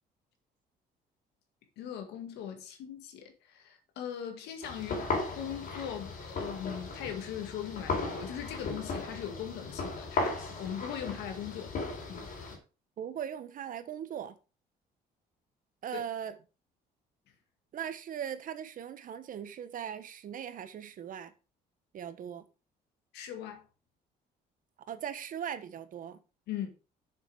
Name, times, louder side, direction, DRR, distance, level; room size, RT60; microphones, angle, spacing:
voice 1, 1.8-11.7 12.1-12.3 15.9-16.0 23.1-23.6 26.5-26.7, left 9 dB, 85° left, 2.0 m, -40 dB
sound 1, 4.6-12.6, left 3 dB, 55° left, 3.8 m, -36 dB
voice 2, 13.0-14.3 15.8-16.4 17.7-21.3 21.9-22.5 24.9-26.2, right 9 dB, 55° right, 1.3 m, -39 dB
7.5 x 7.1 x 4.9 m
cardioid pair, 110°, 17 cm